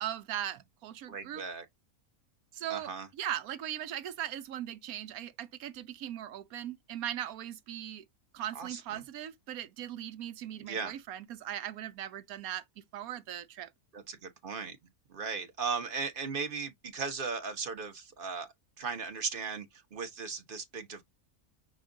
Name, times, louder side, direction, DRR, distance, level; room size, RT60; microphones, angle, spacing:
voice 1, 0.0-1.4 2.5-2.9 3.2-8.0 8.3-12.6 12.9-13.7, right 11 dB, 80° right, 1.1 m, -39 dB
voice 2, 1.1-1.7 2.7-3.1 8.5-9.0 10.6-10.9 13.9-14.8 15.1-18.5 18.8-21.0, right 5 dB, 40° right, 1.1 m, -37 dB
6.2 x 2.3 x 3.8 m
omnidirectional pair, 1.5 m